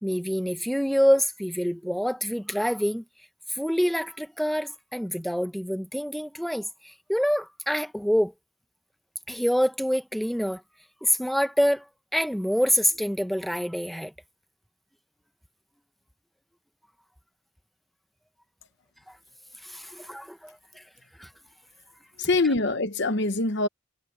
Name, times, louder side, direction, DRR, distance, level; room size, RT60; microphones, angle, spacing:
voice 1, 0.0-3.0 3.5-8.3 9.3-10.6 11.0-11.8 12.1-14.1 19.6-20.8 21.2-21.3, equal, ahead, 0.8 m, -26 dB
voice 2, 22.2-23.7, left 2 dB, 50° left, 1.0 m, -24 dB
head